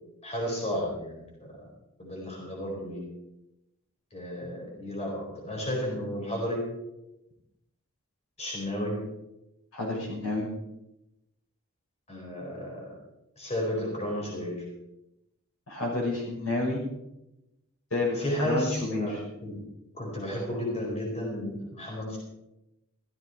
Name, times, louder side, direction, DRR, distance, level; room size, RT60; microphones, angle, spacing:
voice 1, 0.2-1.5 2.0-3.0 4.1-6.7 8.4-9.0 12.1-12.8 13.4-14.6 18.2-19.2 19.4-19.6 19.9-22.2, equal, 30° left, -2 dB, 4.4 m, -32 dB
voice 2, 9.7-10.5 15.7-16.8 17.9-18.2 18.4-19.2, left 2 dB, 70° left, -2 dB, 5.7 m, -29 dB
15.0 x 14.0 x 4.6 m, 0.91 s
head